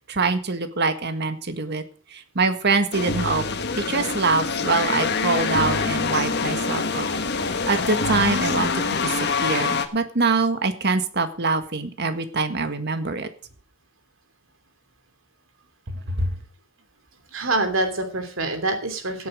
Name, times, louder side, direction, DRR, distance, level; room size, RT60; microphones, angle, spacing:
voice 1, 0.1-1.8 2.1-3.4 3.8-7.1 7.4-9.1 9.4-13.3 15.9-16.4, right 3 dB, 55° right, 9 dB, 1.7 m, -24 dB
sound 1, 2.9-9.9, left 4 dB, 55° left, 1.4 m, -25 dB
voice 2, 17.3-19.3, right 2 dB, 75° right, 7 dB, 3.0 m, -25 dB
16.5 x 8.7 x 5.0 m, 0.38 s
head